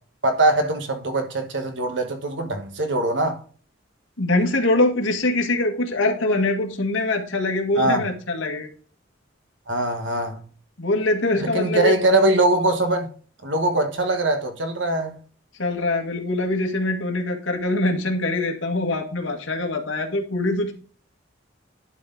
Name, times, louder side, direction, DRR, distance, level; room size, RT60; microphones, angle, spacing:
voice 1, 0.2-3.4 7.8-8.1 9.7-10.4 11.4-13.1 13.4-15.2, right 2 dB, 65° right, 1.4 m, -22 dB
voice 2, 4.2-8.7 10.8-11.9 15.6-20.7, left 2 dB, 70° left, 1.9 m, -23 dB
11.0 x 4.8 x 3.9 m
head